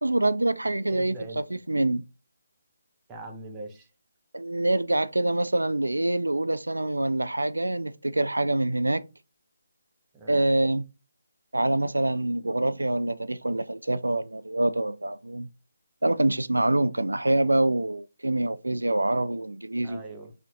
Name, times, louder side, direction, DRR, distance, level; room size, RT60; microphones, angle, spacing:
voice 1, 0.0-2.0 4.3-9.0 10.3-10.9 11.5-15.5 16.0-20.0, right 1 dB, 80° right, 0.3 m, -25 dB
voice 2, 0.9-1.6 3.1-3.9 10.1-10.5 19.8-20.3, right 2 dB, 15° right, 0.7 m, -41 dB
4.2 x 2.6 x 2.6 m
figure-of-eight pair, 150°, 0 cm